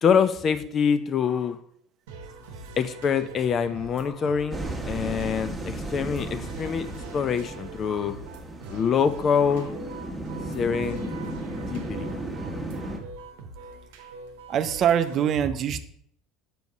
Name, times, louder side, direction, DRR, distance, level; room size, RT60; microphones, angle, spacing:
voice 1, 0.0-1.6 2.8-6.9 7.1-8.2 8.7-9.7 10.5-11.1 11.7-12.1, left 7 dB, 40° left, 12 dB, 0.5 m, -25 dB
sound 1, 2.1-15.2, right 3 dB, 70° right, 0.9 m, -43 dB
sound 2, 4.5-13.0, right 1 dB, 10° right, 1.3 m, -35 dB
voice 2, 14.5-15.8, right 9 dB, 45° right, 11 dB, 0.6 m, -23 dB
6.0 x 5.3 x 4.8 m, 0.66 s
hypercardioid pair, 70°, 0 cm